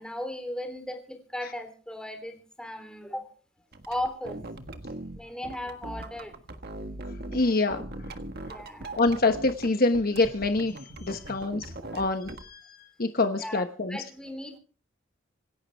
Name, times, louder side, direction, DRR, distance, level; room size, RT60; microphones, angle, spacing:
voice 1, 0.0-3.3 3.9-4.4 5.2-6.4 8.3-9.0 11.9-12.0 13.4-14.6, left 1 dB, 5° left, 6 dB, 3.4 m, -37 dB
sound 1, 3.7-7.4 7.7-9.7 9.9-12.4, right 2 dB, 55° right, 1.6 m, -40 dB
voice 2, 7.3-7.8 9.0-12.7 13.0-14.0, left 3 dB, 50° left, 7 dB, 1.1 m, -26 dB
26.5 x 11.5 x 3.5 m, 0.39 s
head